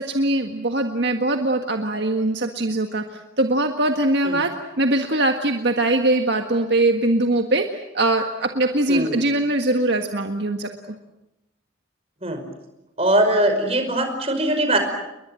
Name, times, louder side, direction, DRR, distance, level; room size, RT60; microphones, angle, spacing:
voice 1, 0.0-10.7, right 2 dB, 60° right, 5 dB, 1.7 m, -22 dB
voice 2, 8.9-9.2 12.2-12.5 13.0-14.8, right 1 dB, 30° right, 7 dB, 5.3 m, -21 dB
30.0 x 22.5 x 7.8 m, 0.93 s
head